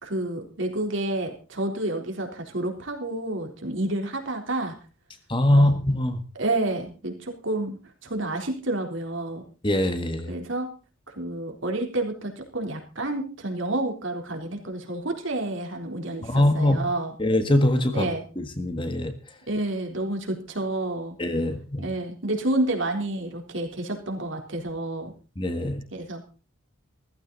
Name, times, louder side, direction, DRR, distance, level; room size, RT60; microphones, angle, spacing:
voice 1, 0.0-4.7 5.5-5.7 6.4-9.4 10.3-10.7 11.1-17.1 17.9-18.2 19.5-21.2 21.8-25.1 25.9-26.3, right 2 dB, 65° right, 3 dB, 3.7 m, -29 dB
voice 2, 5.3-6.2 9.6-10.3 16.2-16.9 17.2-18.1 18.4-19.1 21.2-21.8 25.4-25.8, left 1 dB, 25° left, 8 dB, 1.6 m, -22 dB
16.0 x 14.5 x 4.0 m, 0.34 s
head